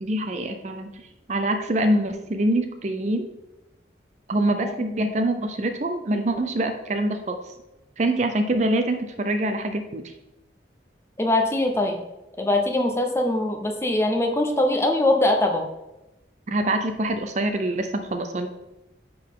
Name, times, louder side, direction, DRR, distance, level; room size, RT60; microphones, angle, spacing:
voice 1, 0.0-0.9 1.3-3.3 4.3-7.4 8.0-10.0 16.5-18.5, right 1 dB, 40° right, 7 dB, 0.5 m, -25 dB
voice 2, 4.6-5.1 11.2-12.0 12.4-15.7, left 1 dB, 15° left, 2 dB, 0.7 m, -22 dB
9.9 x 3.9 x 3.7 m, 0.97 s
head